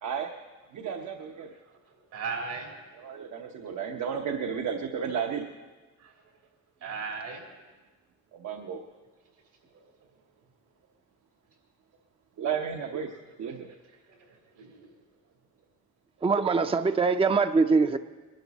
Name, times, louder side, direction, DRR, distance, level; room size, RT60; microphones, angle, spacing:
voice 1, 0.7-1.5 3.0-5.5 8.3-8.9 12.4-13.1 13.4-13.7, right 7 dB, 70° right, 3 dB, 1.0 m, -33 dB
voice 2, 2.1-2.8 6.0-6.1 6.8-7.5 9.7-9.8 14.1-14.9, right 4 dB, 85° right, 1 dB, 3.3 m, -37 dB
voice 3, 16.2-18.0, right 4 dB, 20° right, 8 dB, 0.5 m, -23 dB
21.5 x 12.0 x 4.1 m, 1.3 s
cardioid pair, 90°, 30 cm